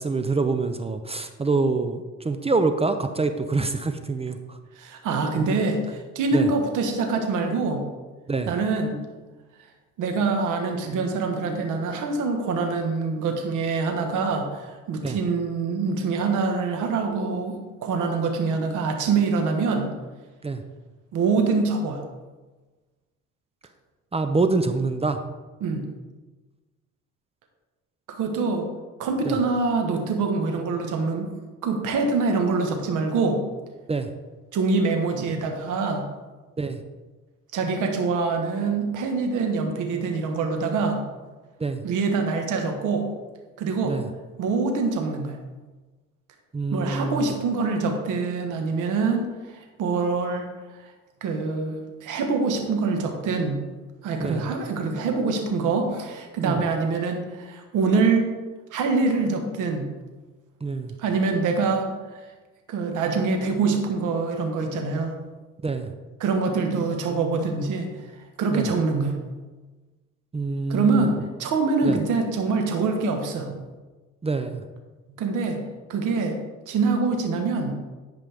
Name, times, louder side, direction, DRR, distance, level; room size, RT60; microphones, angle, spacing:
voice 1, 0.0-4.6 5.5-5.6 6.3-6.5 8.3-8.5 15.0-15.2 20.4-20.6 24.1-25.2 29.2-29.4 33.9-34.1 36.6-36.8 41.6-41.8 43.8-44.1 46.5-47.3 54.2-54.5 56.4-56.6 60.6-60.9 65.6-65.9 68.5-68.7 70.3-71.1 71.8-72.0 74.2-74.6, right 3 dB, 20° right, 9 dB, 0.5 m, -26 dB
voice 2, 4.8-7.9 8.5-9.0 10.0-19.9 21.1-22.0 25.6-25.9 28.1-28.7 29.0-31.3 31.6-33.4 34.5-36.1 37.5-41.0 41.8-43.1 43.6-44.0 44.4-45.4 46.7-50.5 51.2-53.6 54.0-58.3 58.7-59.9 61.0-61.9 62.7-65.1 66.2-67.9 68.4-69.2 70.7-73.6 75.2-75.6 75.9-76.3 76.7-77.7, right 4 dB, 85° right, 4 dB, 1.3 m, -25 dB
10.5 x 5.4 x 3.4 m, 1.2 s
cardioid pair, 90°, 30 cm